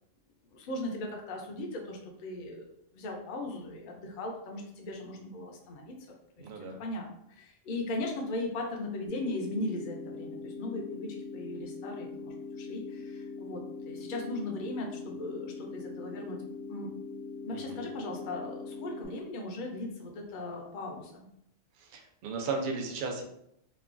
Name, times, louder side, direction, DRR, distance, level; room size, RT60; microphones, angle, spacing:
voice 1, 0.5-6.0 6.4-6.5 6.8-16.4 16.7-16.9 17.4-21.3, left 2 dB, 60° left, 1 dB, 0.5 m, -38 dB
voice 2, 6.4-6.8 17.5-17.9 21.8-23.2, right 4 dB, 70° right, 2 dB, 0.4 m, -35 dB
sound 1, 9.1-19.1, left 4 dB, 85° left, 1.1 m, -42 dB
3.1 x 2.2 x 2.4 m, 0.75 s
omnidirectional pair, 1.4 m